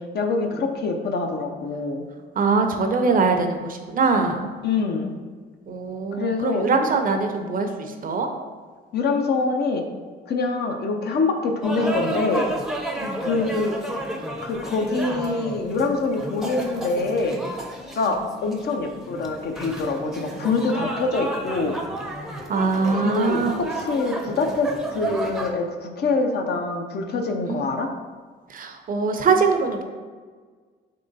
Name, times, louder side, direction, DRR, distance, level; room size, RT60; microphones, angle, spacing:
voice 1, 0.1-2.1 4.6-5.2 6.1-6.7 8.9-9.8 10.3-12.5 13.2-13.7 14.4-17.4 18.0-21.8 23.0-23.4 23.8-24.7 24.9-27.9, left 3 dB, 55° left, 3 dB, 0.6 m, -25 dB
voice 2, 2.4-4.5 5.7-8.3 13.0-13.3 18.0-18.2 22.5-23.5 27.5-27.7 28.5-29.8, right 4 dB, 45° right, 5 dB, 0.5 m, -22 dB
sound 1, 11.6-25.5, right 1 dB, ahead, 0.6 m, -32 dB
3.8 x 3.2 x 3.9 m, 1.5 s
cardioid pair, 90°, 20 cm